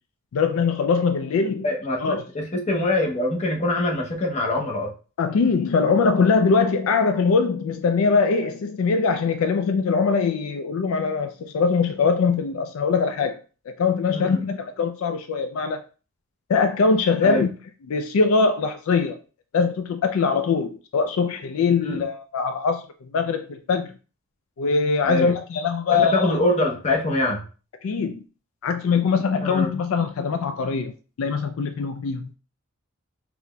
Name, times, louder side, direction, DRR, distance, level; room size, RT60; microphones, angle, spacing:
voice 1, 0.3-1.6 2.0-2.2 5.2-13.4 13.7-15.8 16.5-17.5 17.9-19.2 19.5-23.9 24.6-26.3 27.8-28.2 28.6-30.9 31.2-32.3, left 5 dB, 75° left, 0.3 m, -22 dB
voice 2, 1.6-4.9 14.1-14.4 17.2-17.5 21.8-22.0 25.0-25.3 25.9-27.4 29.4-29.7, left 1 dB, 35° left, 0.7 m, -24 dB
3.9 x 2.9 x 2.2 m
head